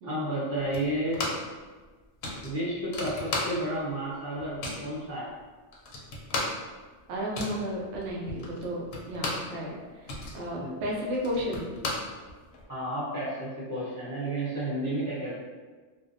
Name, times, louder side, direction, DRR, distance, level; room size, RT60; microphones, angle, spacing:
voice 1, 0.0-1.2 2.4-5.3 10.6-10.8 12.7-15.4, right 1 dB, 20° left, -10 dB, 0.5 m, -31 dB
sound 1, 0.7-1.6 1.8-1.9 2.2-3.9 4.2-4.9 5.4-5.5 5.7-9.6 9.9-12.6, left 2 dB, 65° left, 0.7 m, -35 dB
voice 2, 7.1-11.7, equal, 75° right, -3 dB, 0.9 m, -33 dB
2.6 x 2.0 x 2.5 m, 1.4 s
omnidirectional pair, 1.3 m